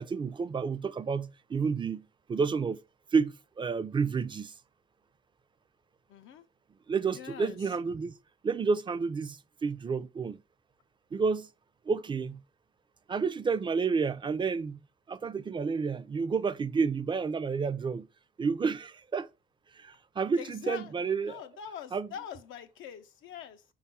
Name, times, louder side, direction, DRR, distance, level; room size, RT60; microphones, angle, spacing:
voice 1, 0.0-2.0 2.3-2.8 3.1-4.5 6.9-8.1 8.4-10.4 11.1-11.5 11.9-12.4 13.1-14.8 15.1-18.1 18.4-19.3 19.7-21.4 21.9-22.1, right 5 dB, 25° right, 0.3 m, -30 dB
voice 2, 6.1-6.5 7.1-7.8 20.4-23.6, left 8 dB, 85° left, 0.5 m, -44 dB
5.2 x 2.4 x 4.1 m
cardioid pair, 90°, 20 cm